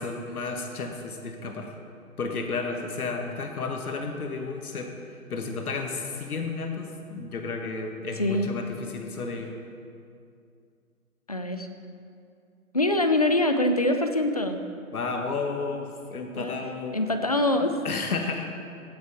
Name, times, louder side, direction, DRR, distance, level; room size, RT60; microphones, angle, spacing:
voice 1, 0.0-1.7 2.2-4.9 5.3-9.5 14.9-17.0 17.8-18.5, left 4 dB, 75° left, 3 dB, 1.6 m, -32 dB
voice 2, 11.3-11.7 12.7-14.6 16.3-16.5 16.9-17.8, left 1 dB, 30° left, 7 dB, 0.4 m, -24 dB
16.5 x 7.3 x 4.6 m, 2.4 s
hypercardioid pair, 155°, 44 cm